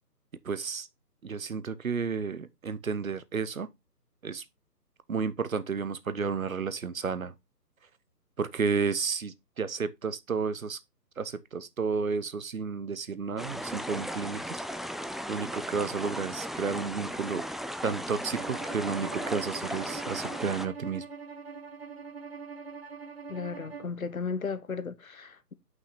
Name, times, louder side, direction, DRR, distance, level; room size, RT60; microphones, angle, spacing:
voice 1, 0.4-0.9 1.2-3.7 4.2-4.4 5.1-7.3 8.4-10.8 11.2-14.6 15.3-17.4 17.8-21.0, right 5 dB, 55° right, 0.7 m, -32 dB
sound 1, 13.4-20.7, equal, ahead, 0.3 m, -36 dB
Bowed string instrument, 18.3-23.9, right 5 dB, 40° right, 1.1 m, -42 dB
voice 2, 23.3-25.5, left 5 dB, 60° left, 0.8 m, -35 dB
5.7 x 5.7 x 4.0 m
hypercardioid pair, 180°, 49 cm